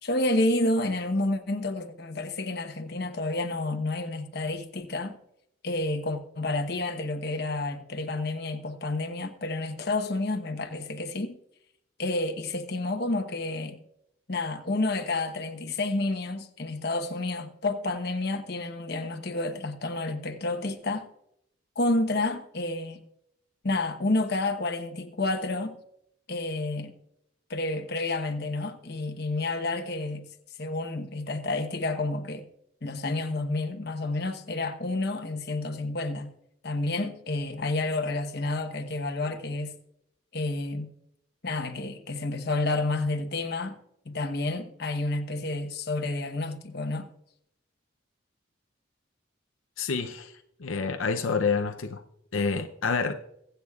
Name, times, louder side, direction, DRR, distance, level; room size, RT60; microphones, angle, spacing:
voice 1, 0.0-5.2 5.6-11.4 12.0-13.8 14.3-21.1 21.7-23.0 23.6-25.8 26.3-26.9 27.5-30.2 30.6-32.5 32.8-36.3 36.6-39.7 40.3-40.9 41.4-43.8 44.0-47.1, left 2 dB, 50° left, 1.0 m, -30 dB
voice 2, 49.8-50.3 50.6-52.0 52.3-53.1, left 5 dB, 85° left, 0.6 m, -28 dB
22.5 x 8.0 x 2.4 m
head